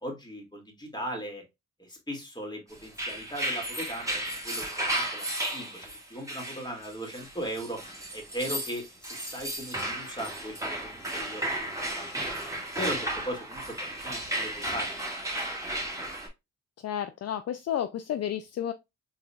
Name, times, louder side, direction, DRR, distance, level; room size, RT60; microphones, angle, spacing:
voice 1, 0.0-1.4 1.8-7.8 8.1-12.1 12.8-15.3 15.6-16.1, equal, 15° left, 2.4 m, -38 dB
sound 1, 2.8-16.3, right 1 dB, 10° right, 1.9 m, -34 dB
voice 2, 16.8-18.7, left 10 dB, 55° left, 0.5 m, -31 dB
4.0 x 3.7 x 2.3 m
supercardioid pair, 45°, 29 cm